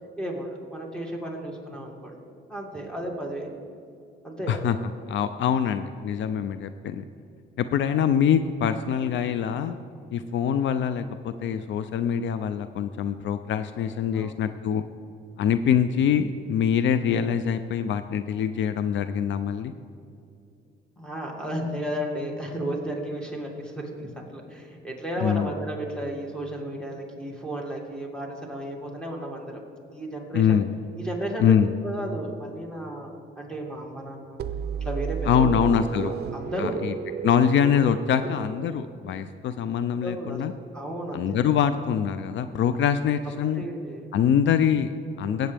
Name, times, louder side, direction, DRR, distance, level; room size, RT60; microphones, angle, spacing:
voice 1, 0.2-2.2 2.5-3.6 4.2-4.6 14.1-14.4 21.0-29.5 29.9-30.5 31.0-34.4 34.8-35.6 36.0-36.9 38.4-38.5 40.0-40.4 40.7-41.4 43.3-44.1, right 1 dB, 5° left, -2 dB, 2.3 m, -33 dB
voice 2, 5.1-7.0 7.6-9.8 10.1-14.8 15.4-19.7 25.2-25.5 30.3-30.7 31.4-31.7 35.3-36.1 36.6-36.9 37.2-40.5 41.1-43.7 44.1-45.5, left 8 dB, 70° left, 11 dB, 0.5 m, -24 dB
sound 1, 34.4-39.1, right 8 dB, 55° right, 0.5 m, -33 dB
17.5 x 7.9 x 3.4 m, 2.5 s
cardioid pair, 90°, 20 cm